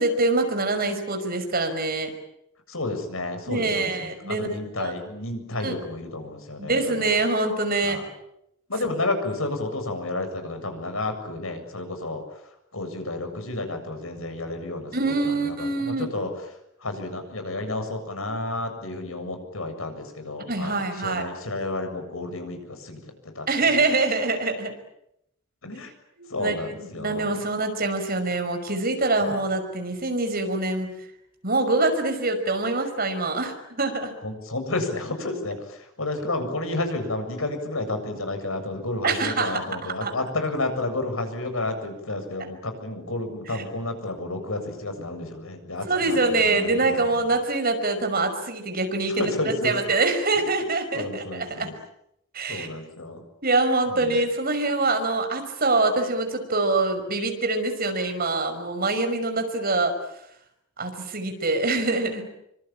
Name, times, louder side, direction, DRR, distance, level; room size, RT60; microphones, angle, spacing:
voice 1, 0.0-2.1 3.5-4.9 5.6-5.7 6.6-8.0 14.9-16.1 20.5-21.2 23.5-24.7 26.2-30.9 31.4-34.1 39.0-40.1 43.5-43.6 45.8-51.7 52.3-52.7 53.4-60.0 60.8-62.2, right 3 dB, 45° right, 6 dB, 5.7 m, -25 dB
voice 2, 2.7-7.2 7.8-8.1 8.7-12.2 12.7-16.3 16.8-23.0 23.4-23.8 25.6-25.9 26.3-27.4 29.2-29.4 34.2-47.1 49.2-49.7 50.9-51.8 52.5-53.2 53.9-54.1, left 2 dB, 85° left, 7 dB, 7.5 m, -31 dB
26.5 x 25.0 x 8.9 m, 0.79 s
head